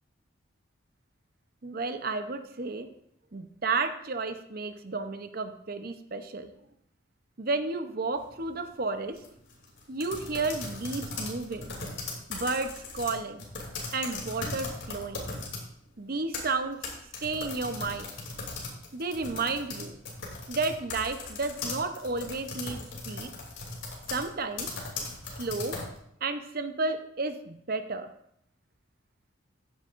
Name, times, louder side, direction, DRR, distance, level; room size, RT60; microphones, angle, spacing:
voice 1, 1.6-2.9 3.3-6.5 7.4-9.2 9.9-11.7 12.3-12.7 12.9-13.4 13.9-15.3 16.0-16.8 17.2-18.1 18.9-20.0 20.5-23.3 24.1-24.7 25.4-25.8 26.2-28.1, right 3 dB, 50° right, 8 dB, 0.8 m, -32 dB
sound 1, 8.2-8.5 9.1-15.7 16.1-26.0, left 3 dB, 65° left, 2.9 m, -38 dB
14.5 x 8.9 x 2.6 m, 0.71 s
head